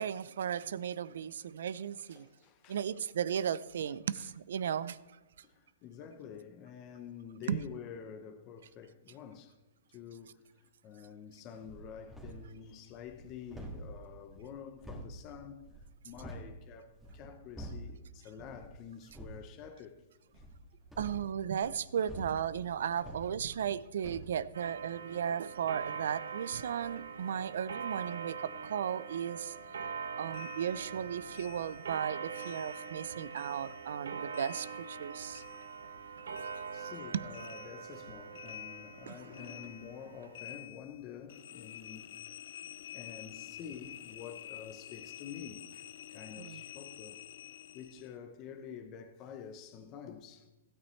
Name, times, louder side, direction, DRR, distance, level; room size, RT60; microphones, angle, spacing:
voice 1, 0.0-2.3 2.7-5.0 7.5-7.6 21.0-29.5 30.2-35.4 37.1-37.2 39.1-39.2 46.4-46.6, right 8 dB, 70° right, 0.5 m, -35 dB
voice 2, 2.1-2.8 4.2-4.3 5.4-9.5 9.9-15.7 16.0-20.0 20.3-20.5 26.4-26.6 36.7-42.4 42.8-47.2 47.7-50.5, left 7 dB, 30° left, 0.8 m, -48 dB
sound 1, 11.6-12.5 12.9-16.5 16.9-18.0 18.4-18.7 19.0-19.4 20.3-23.8 24.0-24.3, right 1 dB, ahead, 2.0 m, -47 dB
Clock, 24.5-40.7, right 6 dB, 90° right, 0.9 m, -43 dB
sound 2, 30.3-33.1 33.3-36.1 36.3-48.1, left 11 dB, 55° left, 0.5 m, -50 dB
16.0 x 9.4 x 3.2 m
hypercardioid pair, 155°, 0 cm